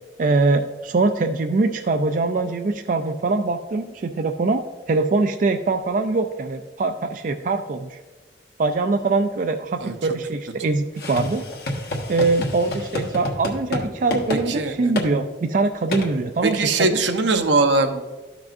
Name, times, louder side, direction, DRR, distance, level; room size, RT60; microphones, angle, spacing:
voice 1, 0.2-8.0 8.6-11.4 12.1-17.0, right 3 dB, 45° right, 5 dB, 0.4 m, -23 dB
sound 1, 11.0-13.8 14.1-14.4 14.9-15.1 15.9-16.1, left 1 dB, 60° left, 1.3 m, -28 dB
voice 2, 14.5-14.9 16.4-18.0, right 3 dB, 80° right, 5 dB, 0.8 m, -21 dB
13.0 x 6.0 x 2.5 m, 1.4 s
head